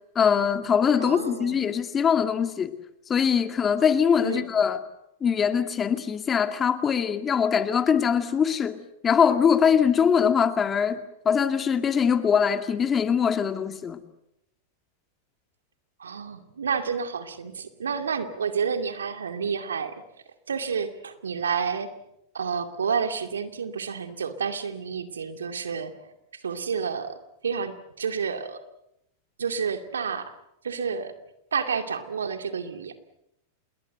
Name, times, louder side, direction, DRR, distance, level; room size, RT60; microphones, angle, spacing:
voice 1, 0.2-2.7 3.1-4.8 5.2-14.0, left 7 dB, 25° left, 2.3 m, -22 dB
voice 2, 1.0-1.7 4.2-4.5 16.0-20.0 20.5-21.9 22.3-28.6 29.4-30.3 30.6-31.1 31.5-33.0, right 6 dB, 85° right, 2.4 m, -30 dB
28.0 x 21.0 x 8.0 m
hypercardioid pair, 100°, 0 cm